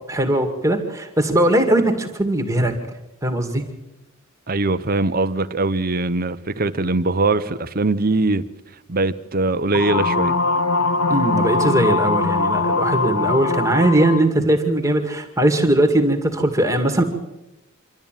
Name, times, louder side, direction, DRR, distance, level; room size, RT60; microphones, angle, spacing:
voice 1, 0.1-2.7 3.2-3.6 11.1-17.0, right 1 dB, 15° right, 2.1 m, -19 dB
voice 2, 4.5-8.5 8.9-10.3, right 2 dB, 40° right, 0.9 m, -21 dB
sound 1, 9.7-14.3, left 3 dB, 85° left, 1.2 m, -21 dB
26.5 x 12.5 x 9.2 m
head